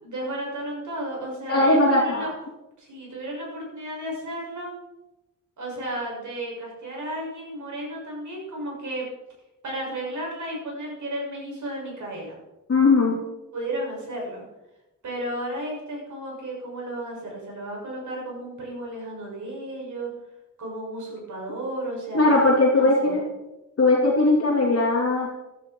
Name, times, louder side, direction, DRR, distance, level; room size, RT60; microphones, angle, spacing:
voice 1, 0.0-2.3 2.8-4.7 5.6-9.0 9.6-12.4 13.5-14.4 15.0-20.1 20.6-23.2, right 1 dB, 70° right, -2 dB, 6.7 m, -33 dB
voice 2, 1.5-2.3 12.7-13.2 22.1-23.2 23.8-25.3, left 2 dB, 50° left, -3 dB, 2.5 m, -19 dB
15.0 x 12.5 x 4.6 m, 0.98 s
wide cardioid pair, 150°, 31 cm